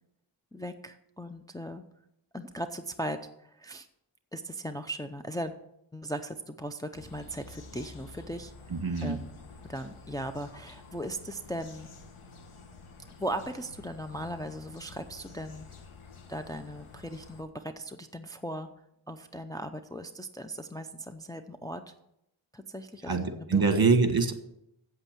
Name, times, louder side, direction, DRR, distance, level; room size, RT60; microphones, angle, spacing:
voice 1, 0.5-1.8 2.3-3.9 4.3-5.5 5.9-8.5 9.0-9.3 9.7-11.9 13.2-15.7 16.3-18.7 19.1-21.9 22.5-23.8, equal, 10° left, 6 dB, 0.6 m, -38 dB
sound 1, 6.9-17.4, left 4 dB, 80° left, 1.4 m, -50 dB
voice 2, 8.7-9.2 23.0-24.3, right 4 dB, 45° right, 7 dB, 1.5 m, -24 dB
8.2 x 8.2 x 7.3 m, 0.80 s
wide cardioid pair, 60°, 49 cm